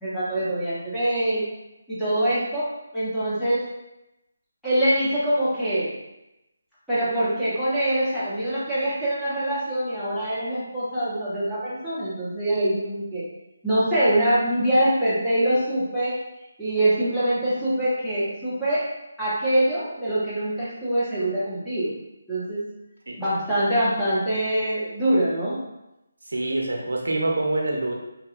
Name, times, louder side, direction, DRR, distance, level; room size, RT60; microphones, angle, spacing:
voice 1, 0.0-1.4 1.9-2.7 2.9-3.6 4.6-5.9 6.9-13.2 13.6-16.2 16.6-18.9 19.2-21.9 22.3-22.6 23.2-25.6, right 1 dB, ahead, -15 dB, 0.9 m, -24 dB
voice 2, 26.3-27.9, right 2 dB, 80° right, 0 dB, 0.5 m, -25 dB
2.8 x 2.3 x 2.4 m, 0.91 s
figure-of-eight pair, 160°, 0 cm